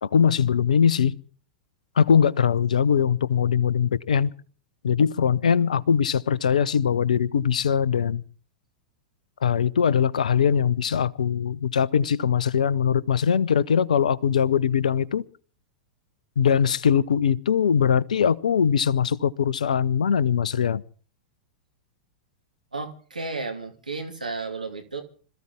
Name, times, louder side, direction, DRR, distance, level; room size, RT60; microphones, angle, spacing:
voice 1, 0.0-1.1 2.0-4.3 4.8-8.2 9.4-15.2 16.4-20.8, left 7 dB, 65° left, 0.9 m, -21 dB
voice 2, 22.7-25.0, right 3 dB, 80° right, 2.6 m, -33 dB
26.0 x 14.5 x 3.7 m
figure-of-eight pair, 95°, 4 cm